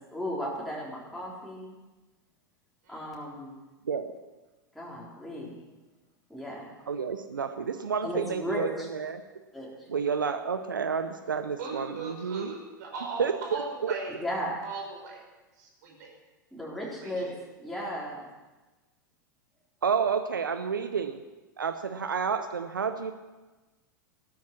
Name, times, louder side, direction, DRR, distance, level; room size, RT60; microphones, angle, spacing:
voice 1, 0.1-1.8 2.9-3.5 4.7-5.6 6.3-6.7 8.0-8.9 9.5-9.9 14.2-14.6 16.5-18.3, equal, ahead, -5 dB, 3.9 m, -35 dB
voice 2, 6.9-9.2 9.9-12.5 13.2-13.9 19.8-21.2 21.6-23.1, right 6 dB, 80° right, 9 dB, 0.7 m, -30 dB
voice 3, 11.6-14.1 14.6-15.2 15.6-16.1 17.0-17.2, right 4 dB, 60° right, 0 dB, 4.9 m, -38 dB
14.5 x 13.0 x 6.0 m, 1.2 s
figure-of-eight pair, 90°, 11 cm